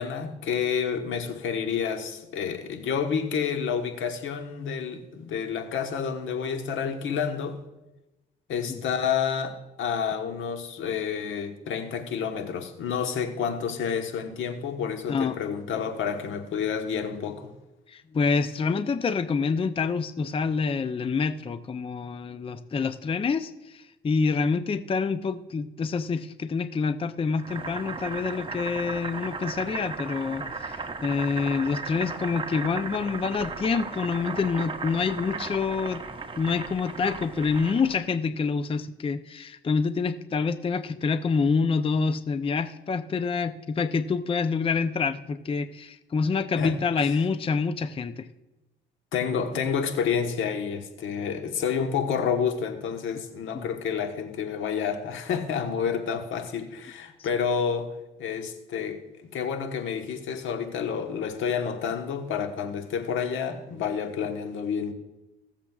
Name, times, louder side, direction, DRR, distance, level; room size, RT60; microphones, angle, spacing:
voice 1, 0.0-7.6 8.5-17.5 46.6-46.8 49.1-57.9 58.2-59.0 59.3-64.9, left 7 dB, 80° left, 6 dB, 1.2 m, -29 dB
voice 2, 17.9-36.0 36.4-48.3 53.5-53.6, left 5 dB, 30° left, 11 dB, 0.5 m, -27 dB
Boiling, 27.4-38.0, right 4 dB, 25° right, 0.9 m, -36 dB
20.0 x 7.3 x 2.4 m, 1.0 s
cardioid pair, 90°, 20 cm